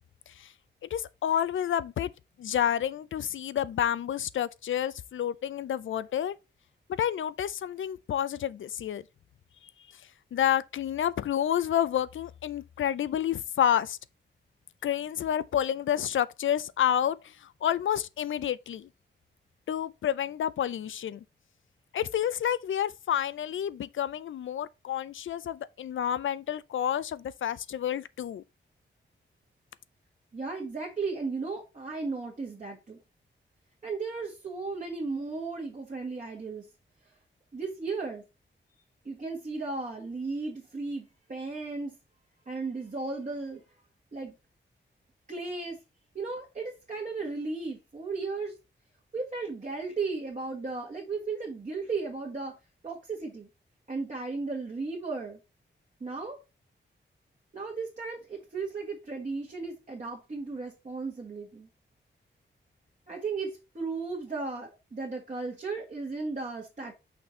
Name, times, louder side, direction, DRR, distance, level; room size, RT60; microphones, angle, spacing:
voice 1, 0.8-2.1 2.4-6.4 7.0-9.0 10.3-14.0 14.8-18.9 19.7-21.2 21.9-28.4, left 10 dB, 85° left, 0.5 m, -29 dB
voice 2, 30.3-33.0 33.8-36.7 37.5-38.2 39.0-42.0 42.4-43.6 44.1-44.3 45.3-45.8 46.1-48.5 49.1-52.6 52.8-53.5 53.9-55.4 56.0-56.4 57.5-61.7 63.1-66.9, right 4 dB, 40° right, 1.7 m, -35 dB
6.0 x 4.2 x 4.4 m
wide cardioid pair, 130°, 20 cm